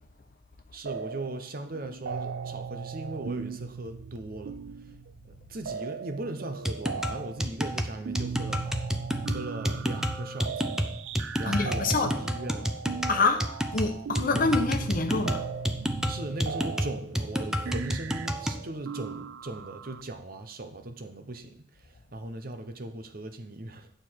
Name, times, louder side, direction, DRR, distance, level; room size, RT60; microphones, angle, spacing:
voice 1, 0.7-4.9 5.2-8.6 9.2-10.7 11.4-12.7 16.1-23.9, right 2 dB, 50° right, 0.9 m, -38 dB
sound 1, 0.9-1.5 1.7-20.0, right 6 dB, 75° right, 0.4 m, -38 dB
sound 2, 6.6-18.6, equal, 5° right, 0.6 m, -30 dB
voice 2, 11.5-12.1 13.1-15.7, left 3 dB, 50° left, 1.0 m, -27 dB
9.2 x 6.8 x 4.6 m
head